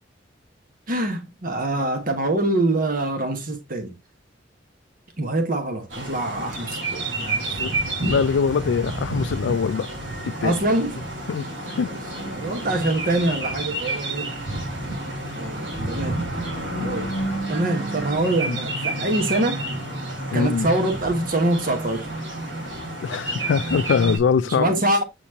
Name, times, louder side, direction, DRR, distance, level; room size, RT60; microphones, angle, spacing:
voice 1, 0.9-3.9 5.2-7.5 10.4-11.0 11.9-12.0 12.3-14.3 15.3-16.2 16.8-17.1 17.5-19.6 20.3-22.1 24.5-25.0, right 2 dB, 50° right, 1.4 m, -24 dB
sound 1, 5.9-24.2, right 2 dB, 85° right, 3.6 m, -30 dB
voice 2, 8.0-9.9 10.4-10.6 11.3-11.5 11.8-11.9 18.5-18.6 20.3-20.7 23.0-24.8, left 6 dB, 75° left, 0.3 m, -22 dB
8.2 x 4.3 x 2.8 m
head